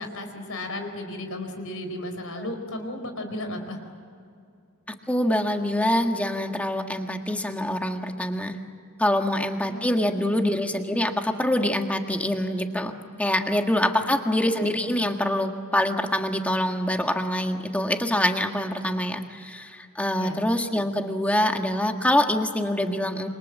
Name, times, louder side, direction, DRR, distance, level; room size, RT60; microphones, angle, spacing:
voice 1, 0.0-3.8 9.6-10.6 13.9-14.5 20.1-20.4, left 1 dB, 70° left, 6 dB, 4.5 m, -35 dB
voice 2, 5.1-8.6 9.0-23.3, left 1 dB, 5° left, 4 dB, 1.7 m, -25 dB
28.0 x 25.5 x 7.5 m, 2.3 s
head